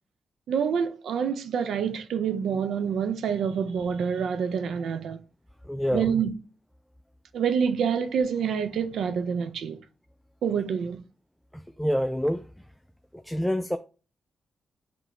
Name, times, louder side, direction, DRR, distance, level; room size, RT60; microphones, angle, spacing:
voice 1, 0.5-5.2 5.9-6.3 7.3-9.8 10.4-11.0, right 7 dB, 80° right, 0.3 m, -27 dB
voice 2, 5.6-6.1 11.5-12.7 13.1-13.8, equal, 5° left, 0.3 m, -28 dB
5.9 x 2.2 x 2.9 m
supercardioid pair, 50°, 0 cm